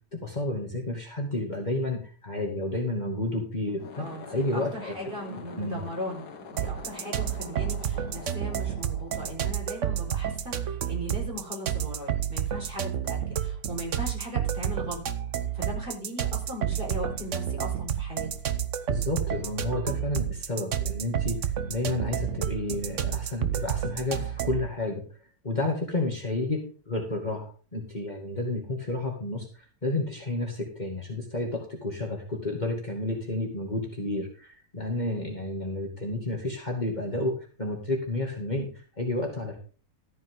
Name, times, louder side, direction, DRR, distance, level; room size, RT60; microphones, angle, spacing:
voice 1, 0.2-4.9 5.2-5.8 18.9-25.0 25.4-29.5 29.8-39.6, left 2 dB, 25° left, 1 dB, 2.3 m, -31 dB
sound 1, 3.7-10.2, left 5 dB, 70° left, 2.0 m, -45 dB
voice 2, 3.9-15.0 15.5-18.3, equal, 30° right, -1 dB, 5.0 m, -38 dB
sound 2, 6.6-24.7, right 9 dB, 50° right, 1.2 m, -30 dB
13.5 x 9.3 x 3.8 m, 0.38 s
omnidirectional pair, 1.8 m